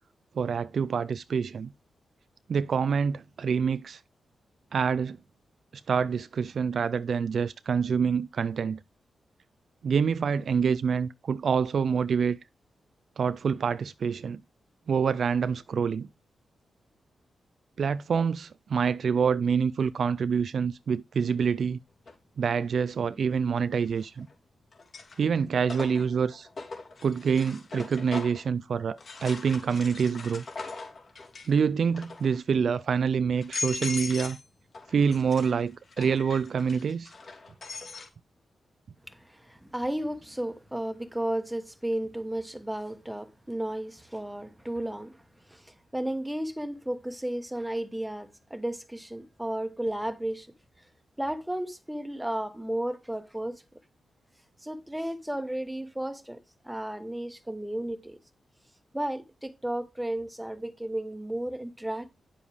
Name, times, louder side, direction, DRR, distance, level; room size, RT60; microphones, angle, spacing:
voice 1, 0.4-1.7 2.5-4.0 4.7-5.2 5.7-8.8 9.8-12.4 13.2-14.4 14.9-16.1 17.8-21.8 22.4-24.3 25.2-26.5 27.0-30.4 31.5-34.4 34.9-37.1, right 6 dB, 60° right, 0.4 m, -26 dB
sound 1, 22.1-22.2 23.9-24.3 24.7-28.5 29.0-31.6 31.9-32.4 32.9-33.0 33.4-34.4 34.7-38.1, left 3 dB, 50° left, 2.9 m, -40 dB
voice 2, 39.1-45.2 45.5-50.5 51.2-53.6 54.6-58.2 58.9-62.1, right 1 dB, 5° right, 1.2 m, -33 dB
9.8 x 7.2 x 3.4 m
wide cardioid pair, 145°, 0 cm